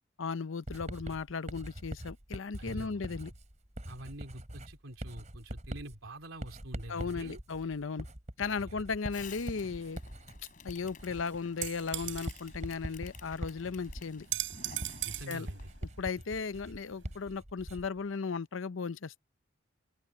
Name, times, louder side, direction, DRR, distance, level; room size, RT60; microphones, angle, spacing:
voice 1, 0.2-3.3 6.9-8.1 8.4-10.0 10.6-14.3 15.3-15.5 16.0-19.2, left 5 dB, 80° left, 0.7 m, -36 dB
Writing, 0.7-18.0, equal, 35° right, 3.7 m, -43 dB
voice 2, 2.6-3.0 3.9-7.4 8.6-8.8 15.0-15.7, right 1 dB, 85° right, 3.2 m, -46 dB
Fireworks, 9.1-15.9, left 5 dB, 45° left, 3.6 m, -53 dB
sound 1, 11.1-17.2, right 14 dB, 70° right, 6.5 m, -41 dB
open air
head